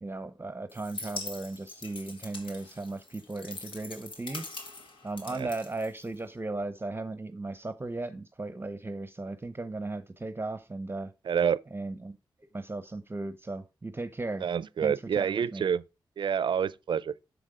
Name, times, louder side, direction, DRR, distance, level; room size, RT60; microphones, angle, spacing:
voice 1, 0.0-4.5 5.0-11.1 11.7-12.2 12.5-14.5 14.8-15.7, right 2 dB, 25° right, 0.8 m, -36 dB
sound 1, 0.7-6.4, left 3 dB, 80° left, 1.9 m, -43 dB
voice 2, 11.3-11.6 14.4-15.8 16.2-17.1, right 7 dB, 70° right, 0.5 m, -28 dB
7.5 x 7.1 x 3.7 m
cardioid pair, 55°, 9 cm